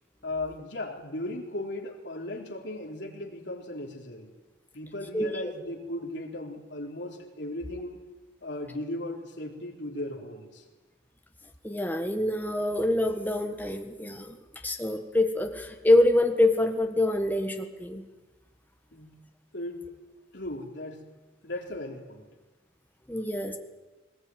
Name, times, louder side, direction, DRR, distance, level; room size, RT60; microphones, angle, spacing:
voice 1, 0.2-4.3 4.7-8.0 8.4-10.6 18.9-19.2 19.5-19.8 20.3-21.1 21.4-22.3, left 1 dB, 70° left, 1 dB, 3.8 m, -37 dB
voice 2, 5.1-5.5 11.6-14.4 14.6-18.0 23.1-23.6, left 1 dB, 10° left, 5 dB, 1.6 m, -25 dB
20.0 x 20.0 x 9.4 m, 1.2 s
head